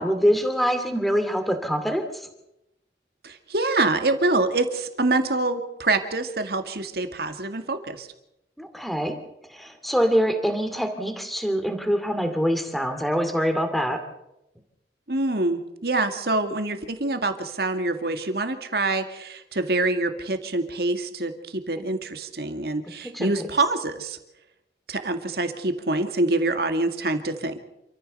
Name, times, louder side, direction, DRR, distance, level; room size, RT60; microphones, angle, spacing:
voice 1, 0.0-2.3 8.6-9.2 9.4-14.0 23.1-23.5, equal, ahead, 7 dB, 2.4 m, -24 dB
voice 2, 3.2-8.1 15.1-24.2 24.9-27.6, right 2 dB, 60° right, 8 dB, 2.1 m, -25 dB
28.0 x 14.5 x 6.8 m, 0.87 s
head